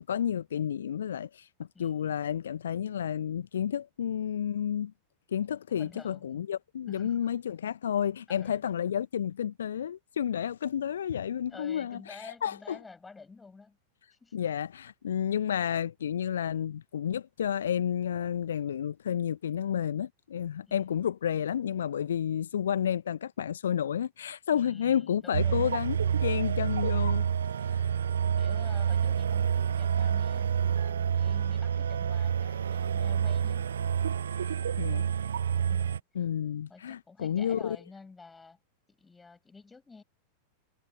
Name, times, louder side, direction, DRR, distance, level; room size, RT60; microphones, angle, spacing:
voice 1, 0.0-1.5 1.8-4.9 5.3-12.8 14.3-26.0 26.2-27.3 27.7-27.8 34.8-35.1 36.1-37.8, left 9 dB, 65° left, 1.3 m, -31 dB
voice 2, 1.7-2.1 5.8-6.4 6.9-7.2 8.3-8.6 11.5-13.8 14.1-14.3 20.6-21.0 24.5-25.8 28.4-33.7 35.7-36.3 36.7-38.6 38.9-40.0, left 4 dB, 10° left, 7.0 m, -50 dB
sound 1, 25.3-36.0, right 8 dB, 65° right, 0.6 m, -28 dB
figure-of-eight pair, 90°, 0 cm